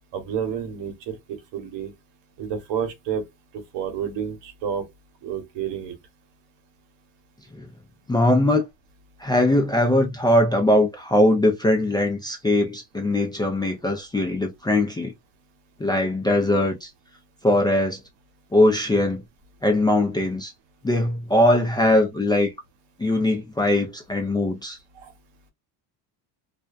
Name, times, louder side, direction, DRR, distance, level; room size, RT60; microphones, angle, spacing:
voice 1, 0.1-1.9 2.4-3.2 3.7-4.8 5.2-5.9 24.9-25.1, right 8 dB, 70° right, 1.1 m, -30 dB
voice 2, 8.1-8.6 9.2-15.1 15.8-16.9 17.4-18.0 18.5-19.2 19.6-20.5 20.8-22.5 23.0-24.8, left 1 dB, 10° left, 0.4 m, -21 dB
2.4 x 2.1 x 2.4 m
cardioid pair, 110°, 45 cm